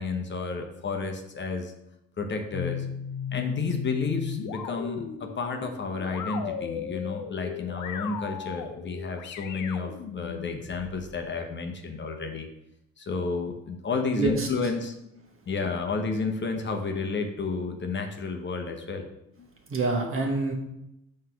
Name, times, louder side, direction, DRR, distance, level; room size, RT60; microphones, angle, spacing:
voice 1, 0.0-1.7 2.2-2.9 3.3-12.5 13.0-14.9 15.5-19.1 19.4-19.5, left 4 dB, 40° left, 4 dB, 0.8 m, -31 dB
sound 1, 2.5-11.1, left 8 dB, 85° left, 0.7 m, -36 dB
voice 2, 14.2-14.5 19.7-20.5, right 3 dB, 45° right, 1 dB, 1.4 m, -26 dB
5.8 x 3.2 x 5.6 m, 0.85 s
cardioid pair, 90°, 30 cm